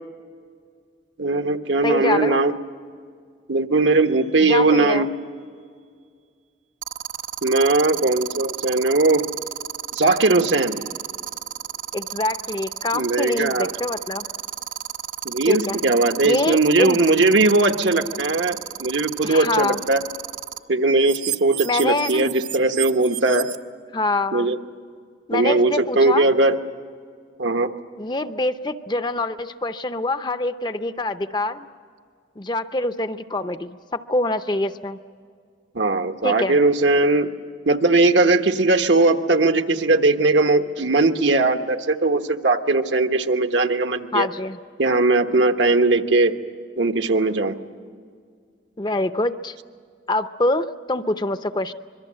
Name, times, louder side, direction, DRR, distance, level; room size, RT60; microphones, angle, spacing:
voice 1, 1.2-2.5 3.5-5.1 7.4-9.2 9.9-10.8 12.9-13.7 15.2-20.0 20.7-23.5 24.3-24.6 25.3-26.6 27.4-27.7 35.7-37.3 37.7-44.3 44.8-46.3 46.8-47.5, right 2 dB, 70° right, 6 dB, 1.2 m, -19 dB
voice 2, 1.8-2.4 4.4-5.1 11.9-14.3 15.5-15.8 16.2-17.0 19.2-19.8 21.6-22.3 23.9-24.5 25.3-26.3 28.0-31.7 32.4-35.0 36.2-36.6 44.1-44.6 48.8-49.5 50.1-51.7, left 2 dB, 25° left, 11 dB, 0.6 m, -25 dB
sound 1, 3.9-4.2 6.8-20.6 21.0-23.6, right 10 dB, 40° right, 0.9 m, -31 dB
25.5 x 22.5 x 7.6 m, 2.1 s
head